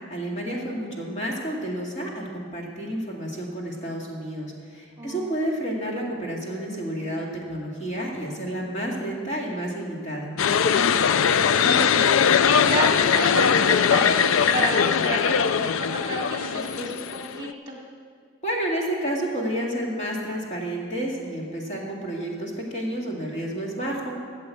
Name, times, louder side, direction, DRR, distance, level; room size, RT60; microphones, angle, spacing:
voice 1, 0.1-10.3 18.4-24.2, right 1 dB, 30° left, -2 dB, 2.1 m, -30 dB
sound 1, 10.4-17.5, left 7 dB, 70° left, 0.4 m, -21 dB
voice 2, 11.4-17.8, right 2 dB, 20° right, -1 dB, 1.8 m, -31 dB
14.0 x 7.8 x 8.3 m, 2.2 s
head